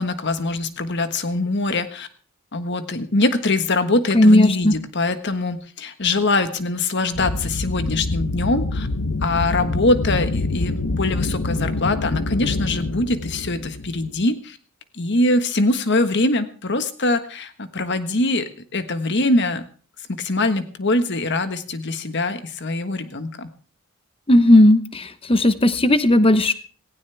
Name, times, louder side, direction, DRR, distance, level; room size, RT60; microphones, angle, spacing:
voice 1, 0.0-2.1 2.5-8.9 9.2-14.6 14.9-19.7 20.1-23.5, left 2 dB, 50° left, 10 dB, 1.4 m, -23 dB
voice 2, 4.1-4.7 24.3-26.5, left 1 dB, 25° left, 13 dB, 0.9 m, -15 dB
sound 1, 7.1-14.2, left 2 dB, 85° left, 0.9 m, -26 dB
18.0 x 16.0 x 3.4 m, 0.41 s
head